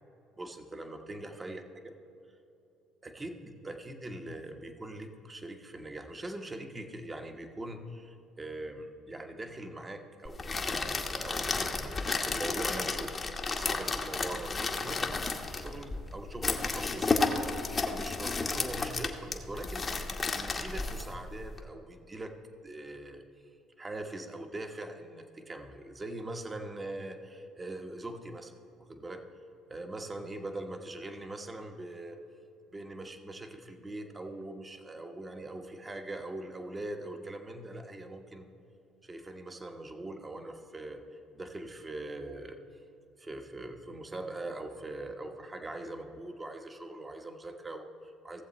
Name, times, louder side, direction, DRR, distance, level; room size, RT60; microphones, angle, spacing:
voice 1, 0.4-1.9 3.0-13.1 13.5-17.5 17.8-22.3 22.6-23.2 23.8-28.5 28.8-29.2 29.7-32.2 32.7-38.5 39.0-42.6 43.2-48.4, right 2 dB, 25° right, 5 dB, 1.2 m, -42 dB
sound 1, 10.2-21.6, left 3 dB, 35° left, 1.1 m, -32 dB
16.0 x 7.2 x 4.3 m, 2.8 s
hypercardioid pair, 65°, 0 cm